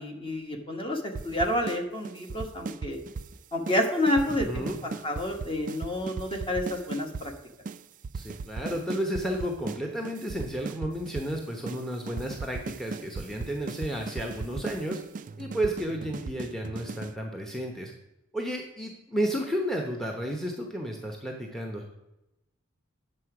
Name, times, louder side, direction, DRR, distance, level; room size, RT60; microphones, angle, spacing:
voice 1, 0.0-3.0 3.5-7.3, left 1 dB, 25° left, 3 dB, 1.3 m, -29 dB
sound 1, 1.1-3.3 3.7-3.8 4.1-7.3 7.7-7.8 8.0-9.8 10.0-11.3 11.7-11.8 12.1-17.1, right 4 dB, 40° right, 0.4 m, -36 dB
voice 2, 4.4-4.8 8.1-15.0 15.4-17.9 18.3-21.8, equal, ahead, 1 dB, 0.9 m, -32 dB
9.8 x 6.7 x 4.8 m, 0.93 s
head